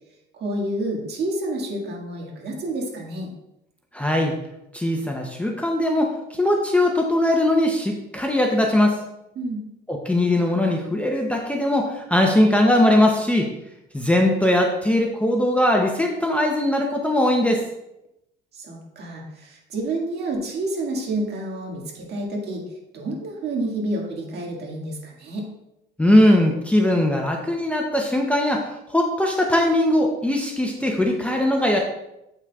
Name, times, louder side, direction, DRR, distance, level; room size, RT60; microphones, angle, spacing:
voice 1, 0.3-3.3 9.4-9.6 18.5-22.6 22.9-25.5, right 1 dB, 50° right, -1 dB, 1.9 m, -29 dB
voice 2, 3.9-4.3 4.7-9.0 9.9-13.5 13.9-17.6 26.0-31.8, left 1 dB, 5° left, 1 dB, 0.7 m, -20 dB
7.9 x 5.9 x 2.3 m, 0.86 s
cardioid pair, 120°, 21 cm